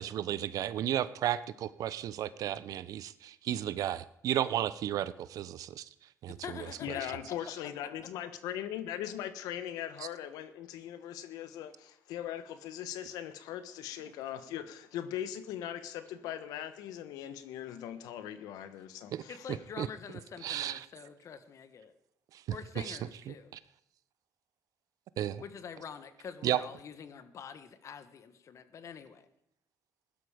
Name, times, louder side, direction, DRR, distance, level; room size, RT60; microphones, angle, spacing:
voice 1, 0.0-5.9 6.2-6.4 19.1-19.2 19.5-19.9 20.4-20.9 22.3-22.4 22.8-23.0 23.3-23.6 25.2-25.4 26.4-26.6, right 11 dB, 70° right, 16 dB, 0.7 m, -33 dB
voice 2, 6.3-7.4 19.3-21.9 22.5-23.6 25.4-29.3, left 7 dB, 55° left, 11 dB, 1.5 m, -46 dB
voice 3, 6.8-19.5, left 10 dB, 85° left, 12 dB, 1.2 m, -40 dB
16.0 x 12.0 x 5.1 m, 0.79 s
supercardioid pair, 80°, 6 cm